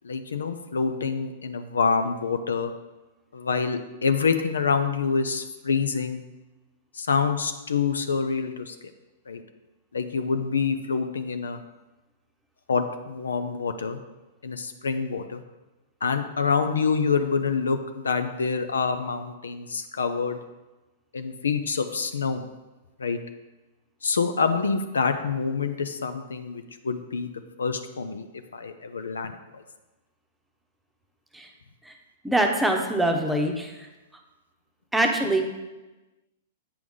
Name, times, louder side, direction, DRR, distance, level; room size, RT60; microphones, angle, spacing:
voice 1, 0.0-2.7 3.3-6.2 6.9-8.8 9.3-9.4 9.9-11.6 12.7-14.0 14.4-15.4 16.0-20.4 21.1-22.4 23.0-23.2 24.0-27.3 27.6-28.3 28.5-29.6, left 5 dB, 75° left, 8 dB, 0.6 m, -26 dB
voice 2, 32.2-33.7 34.9-35.4, right 1 dB, 5° right, 2 dB, 1.0 m, -23 dB
8.5 x 6.0 x 3.7 m, 1.1 s
figure-of-eight pair, 105°, 0 cm